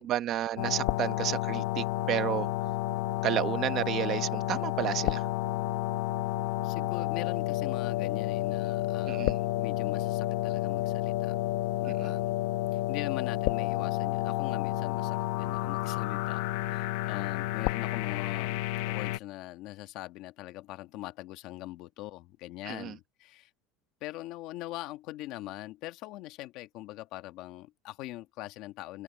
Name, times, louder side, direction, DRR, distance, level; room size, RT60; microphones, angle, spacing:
voice 1, 0.0-2.5 3.2-5.2 9.0-9.4 11.8-12.1 22.7-22.9, right 12 dB, 35° right, 1.0 m, -31 dB
sound 1, 0.6-19.2, left 17 dB, 65° left, 0.9 m, -30 dB
voice 2, 6.6-11.4 11.8-12.3 12.7-23.5 24.0-29.0, left 16 dB, 50° left, 1.4 m, -42 dB
open air
cardioid pair, 175°, 0 cm